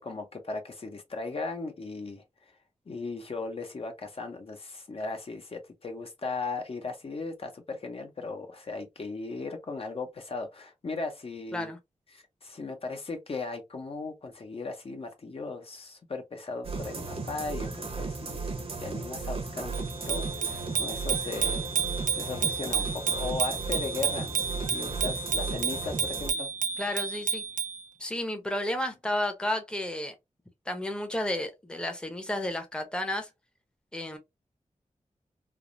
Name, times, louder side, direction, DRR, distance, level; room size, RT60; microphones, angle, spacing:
voice 1, 0.0-2.2 2.9-11.7 12.1-18.4 18.8-19.7 20.1-21.7 22.1-26.5, left 3 dB, 50° left, 0.6 m, -37 dB
sound 1, 16.6-26.3, right 3 dB, 50° right, 0.8 m, -35 dB
Bicycle bell, 19.7-27.8, right 6 dB, 80° right, 0.4 m, -31 dB
voice 2, 26.8-27.4 28.0-30.1 30.7-33.3 33.9-34.2, left 1 dB, 5° left, 0.7 m, -32 dB
3.3 x 2.0 x 2.4 m
wide cardioid pair, 80°, 13 cm